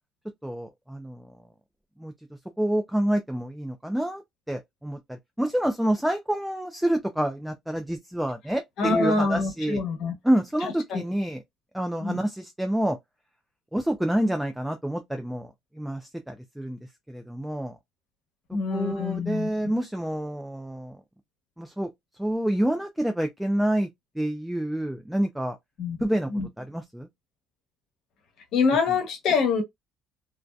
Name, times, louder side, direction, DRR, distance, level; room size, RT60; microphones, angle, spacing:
voice 1, 0.4-1.4 2.0-2.1 2.6-4.2 4.5-9.8 10.2-11.4 11.7-13.0 13.7-16.8 17.1-17.8 18.7-21.0 21.6-21.9 22.2-23.9 24.2-25.6 26.0-26.3 26.6-27.1, right 1 dB, 5° right, 0.3 m, -28 dB
voice 2, 8.8-10.1 10.9-11.0 12.0-12.2 18.5-19.5 25.8-26.0 26.3-26.5 28.5-29.6, left 4 dB, 60° left, 1.0 m, -25 dB
2.6 x 2.1 x 2.3 m
cardioid pair, 135°, 0 cm